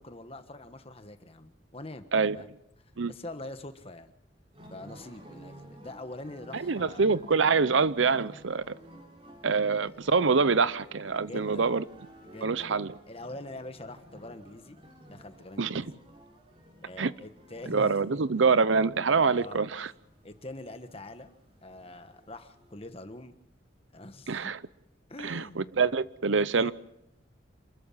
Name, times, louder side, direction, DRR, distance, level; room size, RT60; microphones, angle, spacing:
voice 1, 0.0-2.1 2.3-2.5 3.1-4.1 4.7-7.1 9.7-10.0 11.2-11.7 12.2-12.7 13.1-14.8 15.1-16.0 16.8-18.6 19.3-19.6 20.2-21.3 21.6-23.4 23.9-24.5 25.1-25.7 26.4-26.7, left 1 dB, 30° left, 1.4 m, -44 dB
sound 1, 4.5-22.9, equal, 30° right, 4.2 m, -53 dB
voice 2, 6.5-8.7 9.4-11.8 12.4-12.9 15.6-15.9 17.0-17.1 17.7-19.9 24.3-24.6 25.2-26.7, right 4 dB, 75° right, 0.7 m, -25 dB
27.5 x 13.5 x 7.5 m
head